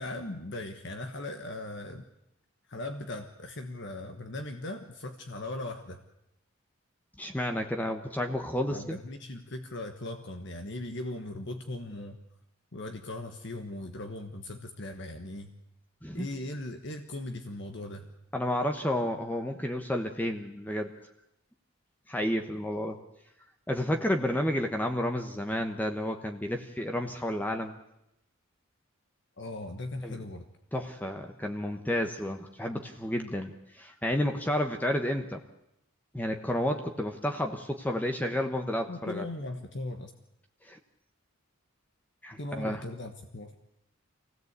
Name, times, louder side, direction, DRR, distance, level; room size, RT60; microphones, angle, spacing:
voice 1, 0.0-2.1 2.7-6.0 8.7-12.2 12.7-15.5 16.1-18.1 29.4-30.5 38.9-40.1 42.4-43.6, left 2 dB, 55° left, 6 dB, 1.4 m, -39 dB
voice 2, 7.2-9.0 16.0-16.3 18.3-20.9 22.1-23.0 23.7-27.8 30.0-30.2 30.7-35.4 36.1-39.2 40.6-40.8 42.2-42.8, left 1 dB, 10° left, 4 dB, 1.0 m, -31 dB
24.5 x 16.5 x 8.2 m, 0.85 s
head